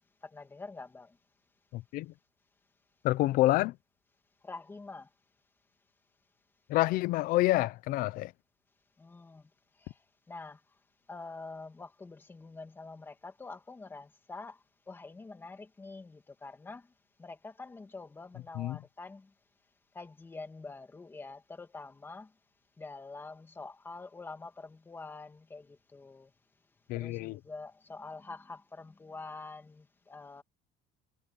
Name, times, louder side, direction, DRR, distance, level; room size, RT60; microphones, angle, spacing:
voice 1, 0.2-1.2 4.4-5.1 9.0-9.5 9.8-10.0 10.3-10.6 11.1-16.9 17.2-19.3 19.9-22.3 22.8-26.3 26.9-30.4, left 3 dB, 10° left, 2.3 m, -46 dB
voice 2, 1.7-2.1 3.0-3.8 6.7-8.3 18.5-18.8 26.9-27.4, left 17 dB, 50° left, 0.6 m, -28 dB
cardioid pair, 180°, 19 cm